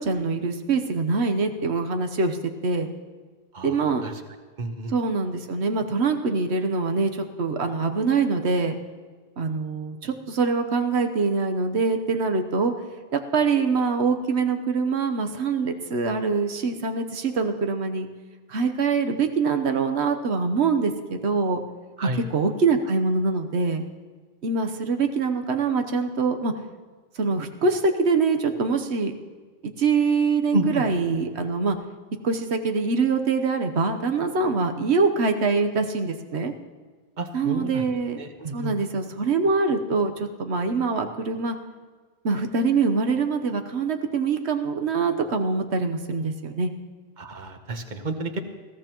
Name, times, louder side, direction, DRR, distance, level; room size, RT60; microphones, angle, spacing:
voice 1, 0.0-2.4 2.6-2.9 3.6-4.0 4.9-8.8 9.4-12.7 13.1-18.1 18.5-20.9 21.2-21.6 22.3-23.8 24.4-26.5 27.2-29.1 29.6-31.8 32.2-36.5 37.3-38.2 38.5-41.6 42.2-46.7, right 4 dB, 90° right, 6 dB, 1.3 m, -24 dB
voice 2, 3.5-4.2 4.6-4.9 22.0-22.2 30.5-30.9 37.2-38.7 47.2-48.4, right 1 dB, 45° right, 6 dB, 1.2 m, -30 dB
20.5 x 15.5 x 3.0 m, 1.4 s
omnidirectional pair, 1.1 m